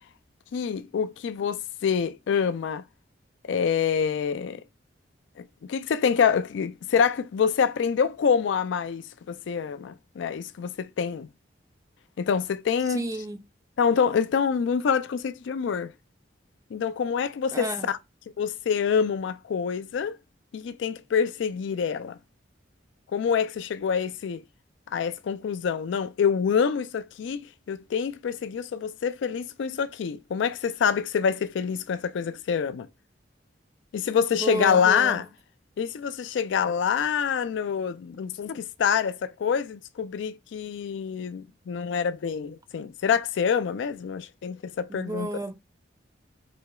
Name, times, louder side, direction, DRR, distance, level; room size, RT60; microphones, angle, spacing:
voice 1, 0.5-2.8 3.4-4.6 5.4-11.3 12.2-13.1 13.8-15.9 16.7-18.0 18.4-20.2 20.5-22.2 23.1-24.4 24.9-27.4 27.7-32.9 33.9-35.3 35.8-45.3, left 7 dB, 75° left, 0.3 m, -26 dB
voice 2, 12.9-13.4 17.5-17.9 34.4-35.2 44.9-45.5, right 1 dB, 15° right, 0.3 m, -32 dB
4.3 x 2.8 x 2.2 m
head